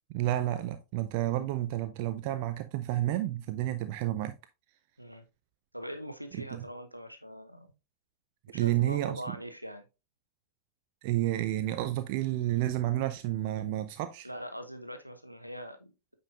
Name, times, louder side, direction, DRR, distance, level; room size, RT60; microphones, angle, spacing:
voice 1, 0.1-4.3 6.5-6.6 8.5-9.2 11.0-14.3, right 14 dB, 45° right, 0.5 m, -30 dB
voice 2, 5.7-7.7 8.5-9.9 14.2-16.2, equal, 90° right, 0.9 m, -42 dB
8.9 x 5.4 x 2.5 m
figure-of-eight pair, 90°, 0 cm